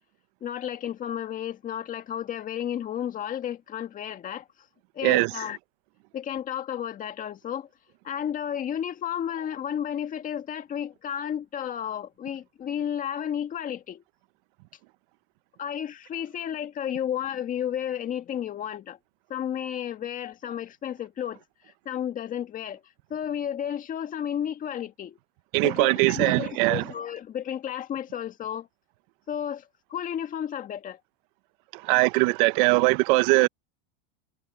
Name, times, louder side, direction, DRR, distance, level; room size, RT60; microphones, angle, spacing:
voice 1, 0.4-4.5 4.9-5.6 6.1-7.7 8.0-14.0 15.6-19.0 19.3-21.4 21.8-22.8 23.1-25.2 25.6-28.7 29.3-31.0, left 9 dB, 25° left, 1.7 m, -32 dB
voice 2, 25.5-26.8 31.7-33.5, right 23 dB, 60° right, 0.9 m, -21 dB
supercardioid pair, 140°, 29 cm